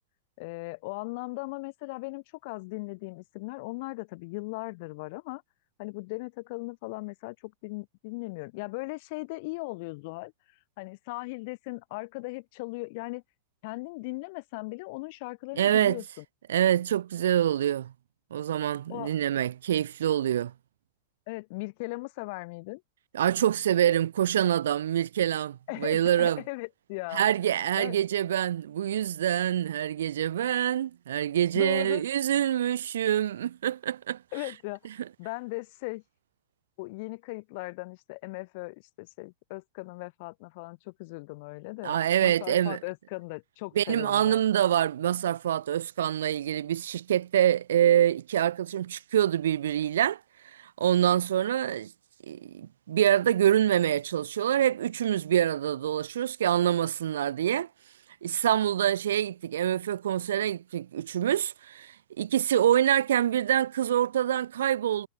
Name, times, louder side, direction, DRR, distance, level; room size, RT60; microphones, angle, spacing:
voice 1, 0.4-5.4 5.8-10.3 10.8-13.2 13.6-16.2 18.9-19.1 21.3-22.8 25.7-27.2 27.7-28.0 31.5-32.0 34.3-34.8 35.2-36.0 36.8-44.4, left 26 dB, 50° left, 2.3 m, -38 dB
voice 2, 15.6-16.0 16.5-17.9 18.3-20.5 23.1-26.4 27.1-34.2 41.8-42.8 43.7-50.2 50.5-51.9 52.3-57.7 58.2-65.1, right 10 dB, 60° right, 1.2 m, -26 dB
figure-of-eight pair, 90°, 0 cm